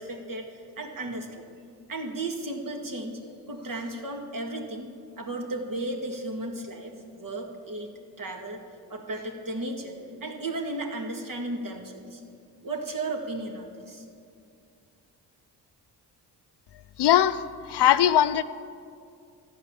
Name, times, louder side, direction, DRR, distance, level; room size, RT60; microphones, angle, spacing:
voice 1, 0.0-1.4 1.9-3.2 3.5-4.9 5.2-7.9 8.2-8.6 8.9-12.2 12.6-14.0, right 2 dB, 50° right, 2 dB, 2.2 m, -34 dB
voice 2, 17.0-17.4 17.7-18.4, left 11 dB, 70° left, 12 dB, 0.7 m, -20 dB
13.0 x 9.4 x 7.2 m, 2.4 s
cardioid pair, 65°, 42 cm